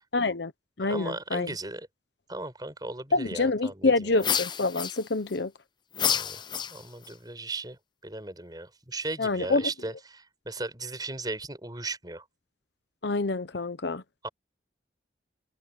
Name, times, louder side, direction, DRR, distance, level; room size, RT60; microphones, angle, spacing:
voice 1, 0.1-0.5 0.8-1.5 3.1-5.5 9.2-9.7 13.0-14.0, left 3 dB, 65° left, 0.9 m, -27 dB
voice 2, 0.9-1.9 2.3-4.2 6.0-6.4 6.7-7.8 8.0-12.2 14.2-14.3, right 2 dB, 20° right, 4.8 m, -37 dB
sound 1, 4.2-5.4 5.9-7.1, left 8 dB, 25° left, 0.5 m, -29 dB
head